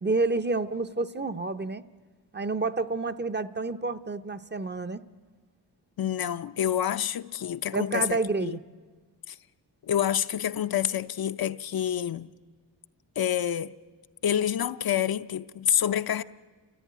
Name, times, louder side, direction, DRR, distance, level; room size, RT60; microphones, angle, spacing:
voice 1, 0.0-1.8 2.3-5.0 7.7-8.6, right 3 dB, 25° right, 0.7 m, -29 dB
voice 2, 6.0-8.6 9.3-9.4 9.8-12.3 13.2-13.7 14.2-16.2, left 10 dB, 60° left, 0.6 m, -28 dB
29.5 x 14.5 x 9.4 m
cardioid pair, 85°, 42 cm